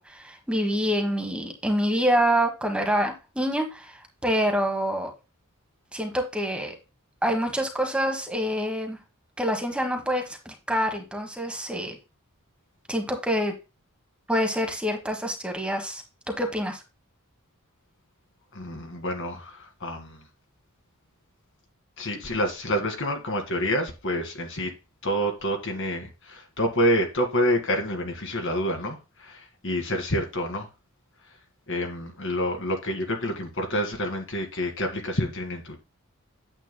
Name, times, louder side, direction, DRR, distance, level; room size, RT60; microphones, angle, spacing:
voice 1, 0.0-5.1 5.9-6.7 7.2-9.0 9.4-12.0 12.9-13.5 14.3-16.0 16.4-16.8, equal, 5° right, 1.3 m, -26 dB
voice 2, 18.5-20.2 22.0-24.7 25.0-30.7 31.7-35.8, equal, 60° left, 2.2 m, -28 dB
8.9 x 8.1 x 2.2 m
head